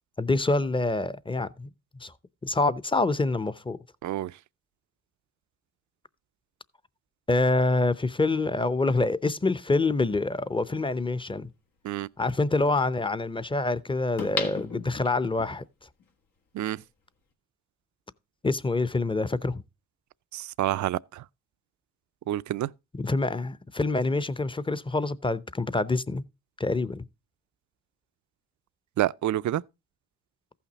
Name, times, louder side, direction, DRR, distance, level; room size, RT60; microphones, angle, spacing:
voice 1, 0.2-1.7 2.0-2.1 2.4-3.8 7.3-11.5 12.2-15.6 18.4-19.6 23.0-26.2 26.6-27.0, left 3 dB, 15° left, 0.6 m, -26 dB
sound 1, 10.6-10.7 14.2-15.5 16.0-16.1, left 5 dB, 85° left, 1.9 m, -34 dB
voice 2, 20.3-21.2 22.3-22.7 29.0-29.6, right 13 dB, 60° right, 0.4 m, -28 dB
14.5 x 5.8 x 4.0 m
cardioid pair, 70°, 33 cm